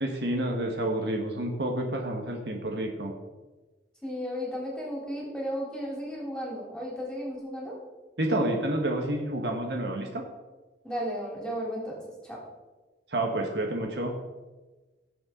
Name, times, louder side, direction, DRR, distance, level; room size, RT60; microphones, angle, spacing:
voice 1, 0.0-3.1 8.2-10.2 13.1-14.2, right 1 dB, 65° right, 2 dB, 1.5 m, -29 dB
voice 2, 4.0-7.8 10.8-12.4, equal, 5° left, -4 dB, 3.5 m, -34 dB
17.5 x 7.2 x 3.9 m, 1.2 s
head